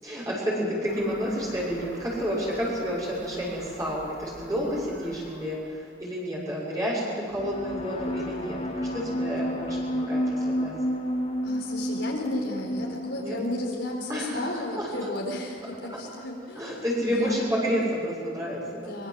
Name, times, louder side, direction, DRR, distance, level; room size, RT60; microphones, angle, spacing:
voice 1, 0.0-8.6 8.9-10.7 13.1-13.4 14.1-14.9 16.5-19.0, equal, 20° right, -5 dB, 6.7 m, -30 dB
sound 1, 0.8-6.0, right 1 dB, 65° right, 6.6 m, -46 dB
sound 2, 7.3-14.9, equal, 35° left, 3.8 m, -31 dB
voice 2, 11.4-16.8 17.2-17.3 18.8-19.1, left 1 dB, 75° left, -1 dB, 4.3 m, -34 dB
24.0 x 23.0 x 7.7 m, 2.3 s
head